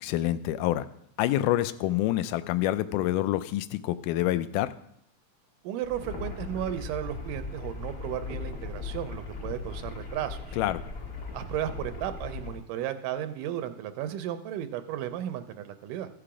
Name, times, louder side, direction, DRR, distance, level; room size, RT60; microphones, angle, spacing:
voice 1, 0.0-0.9 1.2-4.7 10.6-10.8, left 14 dB, 85° left, 12 dB, 2.1 m, -27 dB
voice 2, 5.6-10.6 11.3-16.1, right 11 dB, 90° right, 10 dB, 2.3 m, -34 dB
sound 1, 5.8-12.6, left 4 dB, 45° left, 1.3 m, -38 dB
14.5 x 5.7 x 4.9 m, 0.73 s
omnidirectional pair, 3.7 m